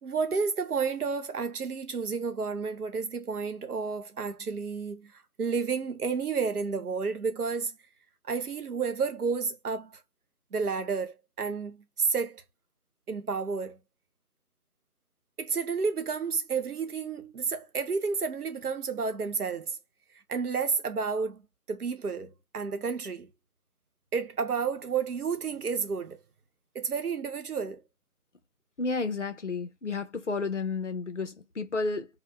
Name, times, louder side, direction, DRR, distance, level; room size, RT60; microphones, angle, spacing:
voice 1, 0.0-7.8 8.2-10.0 10.5-12.4 13.1-13.8 15.4-19.8 20.1-23.3 24.1-26.2 26.7-27.8, right 5 dB, 80° right, 0.8 m, -31 dB
voice 2, 28.8-32.1, left 4 dB, 55° left, 0.6 m, -31 dB
2.7 x 2.1 x 2.2 m
figure-of-eight pair, 170°, 44 cm